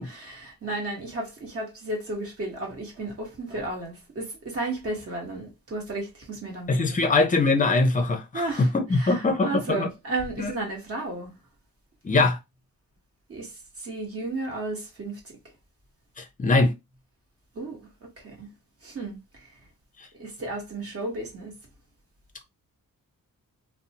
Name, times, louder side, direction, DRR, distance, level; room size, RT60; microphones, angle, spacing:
voice 1, 0.0-7.3 8.3-11.3 13.3-15.3 17.5-17.9 18.2-18.5 18.8-19.5 20.1-21.5, right 2 dB, 40° right, 1.1 m, -34 dB
voice 2, 6.7-9.9 10.4-10.5 12.0-12.4 16.2-16.7, left 3 dB, 25° left, 0.5 m, -22 dB
2.6 x 2.1 x 2.8 m
wide cardioid pair, 140°, 35 cm